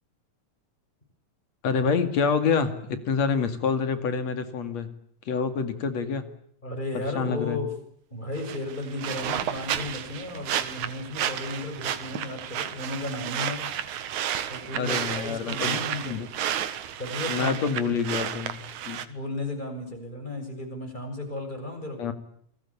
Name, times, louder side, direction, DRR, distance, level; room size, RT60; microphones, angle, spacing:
voice 1, 1.6-4.9 5.3-6.2 6.9-7.6 14.7-15.8 16.0-16.3 17.3-19.0 22.0-22.1, left 5 dB, 60° left, 10 dB, 3.3 m, -27 dB
voice 2, 6.6-7.7 8.1-13.7 14.5-16.2 17.0-17.5 17.8-17.9 19.1-22.1, left 2 dB, 15° left, 4 dB, 7.1 m, -34 dB
sound 1, 8.4-19.1, right 10 dB, 75° right, 2.8 m, -32 dB
28.0 x 20.5 x 8.6 m, 0.69 s
omnidirectional pair, 3.5 m